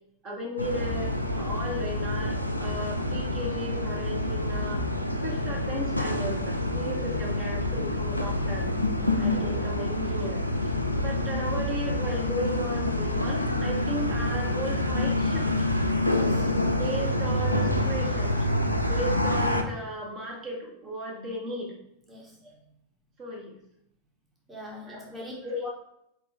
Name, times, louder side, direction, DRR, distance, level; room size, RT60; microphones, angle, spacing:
voice 1, 0.2-4.8 5.2-8.7 9.2-15.5 16.3-18.5 18.8-21.8 22.4-22.5 23.2-23.6 24.8-25.7, equal, 30° right, -1 dB, 1.0 m, -35 dB
sound 1, 0.6-19.6, left 1 dB, 90° left, 0.3 m, -27 dB
voice 2, 16.1-16.5 22.1-22.4 24.5-25.3 25.6-25.7, left 1 dB, 10° right, -3 dB, 1.0 m, -43 dB
4.7 x 3.0 x 3.4 m, 0.77 s
figure-of-eight pair, 90°, 0 cm